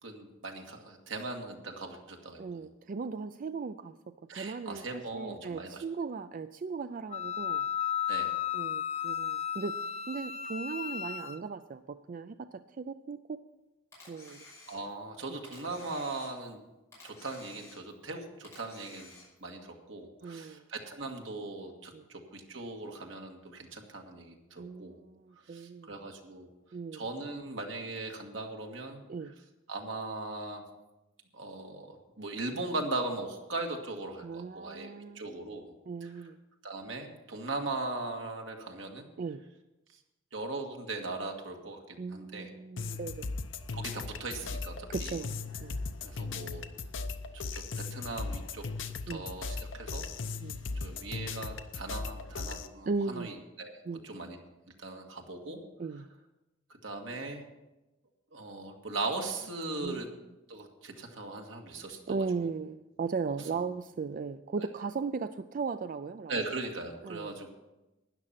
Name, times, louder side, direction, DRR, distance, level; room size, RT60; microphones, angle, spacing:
voice 1, 0.0-2.6 4.3-5.8 8.1-8.3 14.7-16.6 17.0-19.1 19.4-25.0 25.5-26.5 26.9-29.0 29.7-30.6 31.3-35.6 36.0-36.1 36.6-39.1 40.3-41.8 42.1-42.5 43.7-45.2 46.0-46.6 47.3-47.6 47.9-48.6 49.1-50.1 50.8-53.8 54.0-54.4 54.8-55.6 56.7-57.4 58.3-60.1 60.5-62.3 63.5-63.6 64.6-64.7 66.3-67.5, right 2 dB, 80° right, 2 dB, 1.9 m, -39 dB
voice 2, 2.4-7.7 8.5-9.8 10.1-13.4 14.1-14.4 15.3-15.4 20.2-20.7 21.9-22.1 24.6-25.9 26.7-27.1 29.1-29.3 34.2-35.2 35.9-36.4 39.2-39.4 42.0-43.3 44.9-45.9 49.1-49.3 50.4-50.6 52.9-53.3 53.9-54.0 55.8-56.1 59.7-60.2 62.1-66.4 67.0-67.4, right 4 dB, 45° right, 11 dB, 0.4 m, -37 dB
Wind instrument woodwind instrument, 7.1-11.4, left 9 dB, 35° left, 0.5 m, -34 dB
Camera, 13.9-15.1 15.4-16.6 16.9-18.1 18.4-19.5, left 2 dB, 15° left, 5.6 m, -53 dB
sound 1, 42.8-52.7, left 4 dB, 75° left, 0.8 m, -38 dB
12.5 x 10.0 x 5.8 m, 1.0 s
head